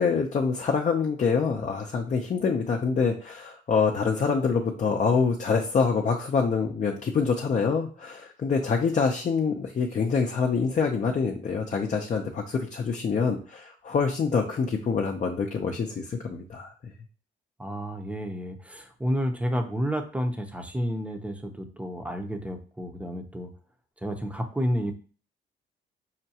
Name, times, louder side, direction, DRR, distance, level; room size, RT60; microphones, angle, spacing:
voice 1, 0.0-16.9, left 5 dB, 40° left, 1 dB, 0.6 m, -26 dB
voice 2, 17.6-23.5 24.0-24.9, equal, 5° right, 5 dB, 0.7 m, -30 dB
5.7 x 2.2 x 2.8 m, 0.39 s
cardioid pair, 90°, 20 cm